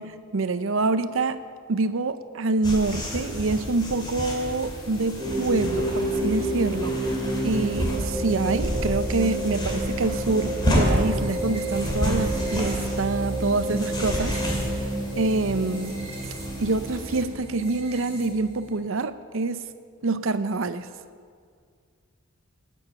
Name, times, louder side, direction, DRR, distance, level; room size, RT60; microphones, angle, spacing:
voice 1, 0.0-1.4 1.7-6.9 7.4-14.4 15.1-16.0 16.6-19.6 20.0-20.9, right 3 dB, 65° right, 13 dB, 0.6 m, -26 dB
sound 1, 2.6-17.3, equal, 20° left, 2.5 m, -31 dB
sound 2, 5.2-18.7, right 1 dB, 30° right, 2.4 m, -30 dB
18.5 x 9.0 x 5.9 m, 2.1 s
head